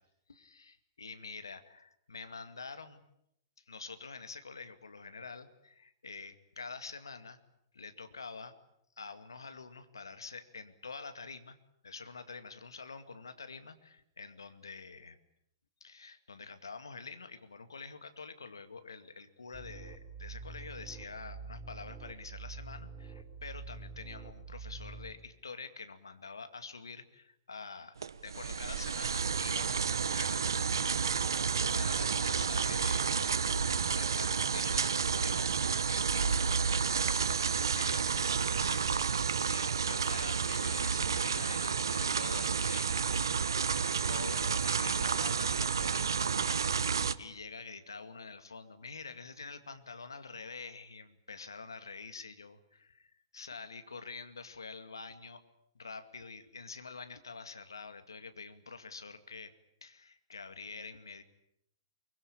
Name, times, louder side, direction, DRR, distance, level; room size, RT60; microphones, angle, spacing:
voice 1, 0.3-3.0 3.7-7.4 7.7-8.5 9.0-11.6 11.8-15.2 15.8-30.7 31.3-43.1 43.6-52.5 53.3-55.4 55.7-59.5 59.8-61.2, left 4 dB, 85° left, 9 dB, 2.3 m, -47 dB
sound 1, 19.5-25.1, right 4 dB, 30° right, 5.5 m, -46 dB
sound 2, 28.0-47.1, right 6 dB, 75° right, 1.1 m, -30 dB
24.0 x 23.5 x 8.7 m, 0.78 s
hypercardioid pair, 115°, 2 cm